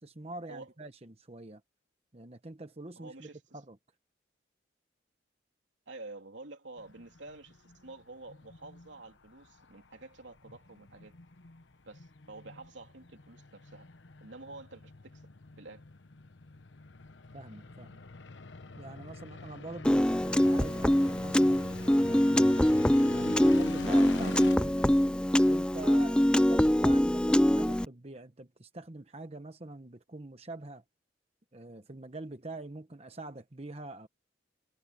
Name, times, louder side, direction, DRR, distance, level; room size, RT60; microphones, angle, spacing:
voice 1, 0.0-1.6 2.1-3.8 17.3-18.0 18.8-22.7 23.1-30.8 31.5-34.1, right 2 dB, 35° right, 1.0 m, -45 dB
voice 2, 3.0-3.6 5.9-11.2 11.8-13.9 14.2-15.2 15.6-15.8, right 2 dB, 80° right, 3.1 m, -49 dB
sound 1, 6.8-24.6, left 3 dB, 75° left, 1.1 m, -46 dB
Piano, 19.8-27.9, equal, 5° left, 0.3 m, -24 dB
head